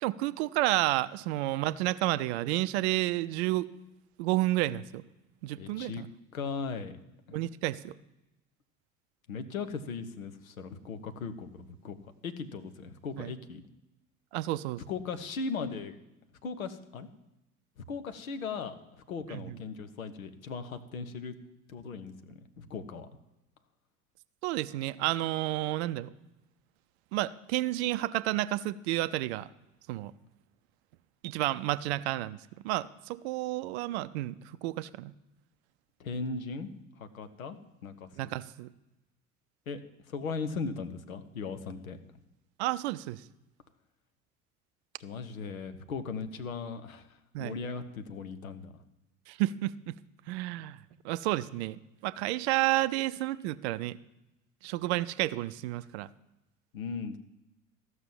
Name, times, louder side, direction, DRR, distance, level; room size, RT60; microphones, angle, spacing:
voice 1, 0.0-3.7 4.2-5.0 5.4-6.1 7.3-8.0 13.2-13.3 14.3-14.8 19.3-19.6 24.4-26.1 27.1-29.5 29.9-30.1 31.2-35.1 38.2-38.7 42.6-43.2 47.3-47.5 49.3-50.0 50.3-50.8 51.0-51.8 52.0-54.0 54.6-56.1, right 16 dB, 50° right, 16 dB, 0.5 m, -31 dB
voice 2, 5.6-6.0 6.3-6.9 7.3-7.5 9.3-12.0 12.2-13.6 14.9-16.0 16.4-17.1 17.9-18.8 19.1-21.3 21.7-23.1 36.0-36.7 37.0-38.3 39.7-39.8 40.1-42.0 45.0-48.7 56.7-57.2, left 4 dB, 75° left, 10 dB, 0.9 m, -38 dB
13.5 x 6.2 x 7.4 m, 0.94 s
figure-of-eight pair, 65°, 42 cm